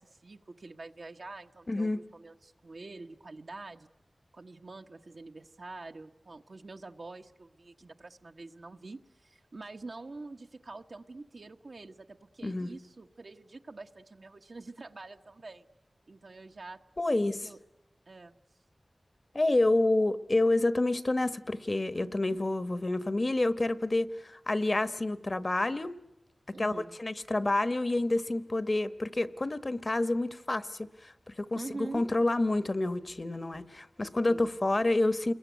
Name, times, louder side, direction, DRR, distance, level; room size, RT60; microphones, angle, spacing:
voice 1, 0.0-3.9 4.3-15.7 16.1-16.8 17.1-17.6 18.1-18.3 21.9-22.4 26.5-27.0 31.5-32.2 34.3-34.5, right 3 dB, 70° right, 4 dB, 1.2 m, -46 dB
voice 2, 1.7-2.0 12.4-12.7 17.0-17.4 19.3-26.0 26.6-26.7 27.0-35.3, left 2 dB, 45° left, 13 dB, 1.2 m, -28 dB
28.5 x 22.0 x 9.4 m, 0.95 s
wide cardioid pair, 50°, 0 cm